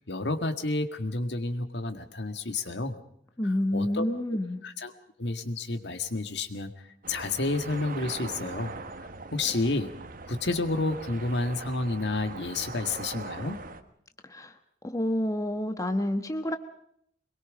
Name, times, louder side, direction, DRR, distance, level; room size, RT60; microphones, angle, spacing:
voice 1, 0.0-3.0 3.4-4.1 4.6-4.9 5.2-6.7 7.1-8.7 9.3-10.0 10.2-13.6, left 2 dB, 70° left, 8 dB, 1.8 m, -30 dB
voice 2, 3.4-4.6 14.2-14.5 14.8-16.6, left 1 dB, 20° left, 7 dB, 1.2 m, -28 dB
sound 1, 7.0-13.8, right 3 dB, 50° right, 1.4 m, -41 dB
23.5 x 22.0 x 5.1 m, 0.69 s
head